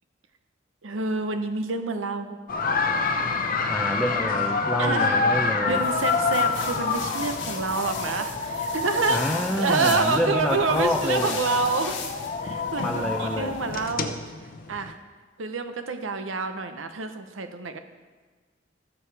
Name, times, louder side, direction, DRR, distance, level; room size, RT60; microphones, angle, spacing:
voice 1, 0.8-2.4 4.8-9.2 9.6-11.9 12.4-14.2 14.7-15.0 15.4-17.8, right 4 dB, 85° right, 7 dB, 0.8 m, -28 dB
sound 1, 2.5-14.9, left 4 dB, 45° left, 0.7 m, -27 dB
voice 2, 3.7-5.8 9.1-11.4 12.8-13.5, equal, 5° left, 1 dB, 0.5 m, -27 dB
sound 2, 5.7-13.9, left 5 dB, 70° left, 1.4 m, -38 dB
15.5 x 7.1 x 3.3 m, 1.4 s
head